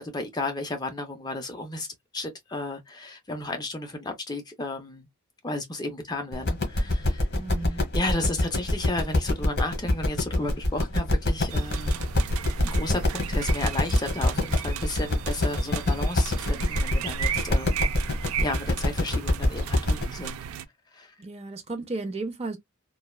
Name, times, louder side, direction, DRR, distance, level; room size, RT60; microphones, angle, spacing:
voice 1, 0.0-1.9 2.1-5.1 5.4-12.0 12.6-17.9 18.4-20.4 20.9-21.2, left 2 dB, 20° left, 0.4 m, -33 dB
sound 1, 6.3-20.0, left 1 dB, 50° left, 1.1 m, -25 dB
voice 2, 7.3-7.9 21.2-22.6, right 3 dB, 30° right, 0.6 m, -34 dB
sound 2, 11.5-20.7, right 7 dB, 80° right, 0.3 m, -35 dB
3.2 x 2.2 x 2.2 m
head